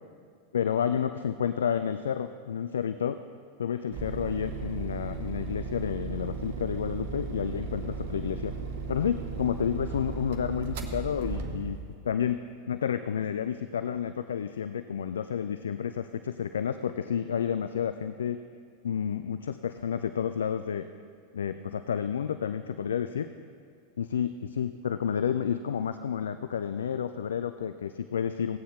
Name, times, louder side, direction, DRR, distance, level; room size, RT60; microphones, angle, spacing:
voice 1, 0.5-3.2 3.6-8.5 8.9-11.8 12.0-12.4 12.7-18.4 18.8-20.9 21.3-23.3 24.0-28.6, left 8 dB, 65° left, 10 dB, 0.3 m, -30 dB
sound 1, 3.9-12.0, right 4 dB, 50° right, 0.9 m, -36 dB
16.0 x 9.0 x 3.0 m, 2.3 s
figure-of-eight pair, 90°, 0 cm